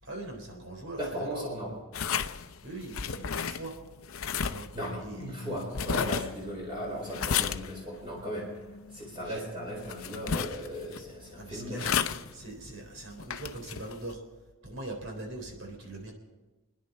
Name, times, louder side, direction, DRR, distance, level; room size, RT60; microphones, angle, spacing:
voice 1, 0.0-1.4 2.6-3.7 4.4-4.7 5.0-5.3 9.3-9.4 11.4-14.2 14.6-16.1, right 2 dB, 70° right, 1 dB, 3.7 m, -41 dB
voice 2, 1.0-1.7 4.7-8.5 8.9-11.9, equal, 25° right, -3 dB, 4.4 m, -37 dB
sound 1, 1.9-14.1, left 7 dB, 85° left, 0.6 m, -34 dB
29.5 x 10.0 x 4.3 m, 1.2 s
head